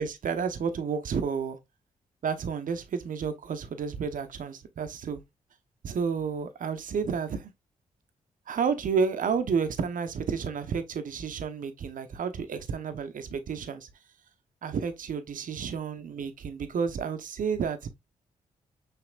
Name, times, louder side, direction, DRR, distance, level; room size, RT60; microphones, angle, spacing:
voice 1, 0.0-1.6 2.2-5.2 5.8-7.5 8.5-13.9 14.6-17.9, right 6 dB, 65° right, 0.8 m, -31 dB
5.8 x 3.4 x 2.3 m
supercardioid pair, 45°, 15 cm